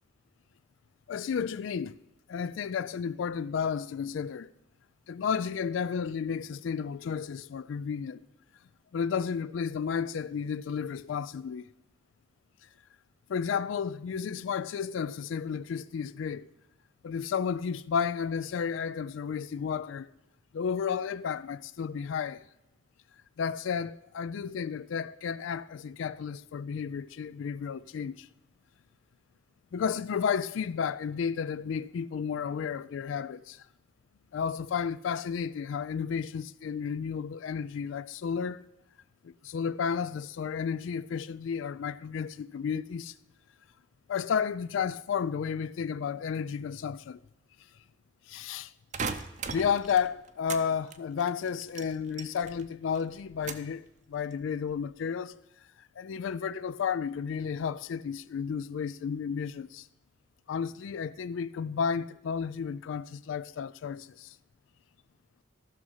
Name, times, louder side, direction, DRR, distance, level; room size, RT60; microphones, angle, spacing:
voice 1, 1.1-2.0 2.3-4.5 5.1-8.2 8.9-11.7 13.3-16.5 17.0-20.1 20.5-22.4 23.4-28.3 29.7-33.6 34.3-38.6 39.2-43.1 44.1-47.2 48.3-48.7 49.5-55.4 56.0-59.9 60.5-64.4, left 6 dB, 85° left, 0.3 m, -32 dB
sound 1, 48.9-50.7 50.9-52.7 53.0-53.8 54.2-54.7, right 5 dB, 40° right, 0.6 m, -38 dB
14.0 x 6.3 x 5.5 m
head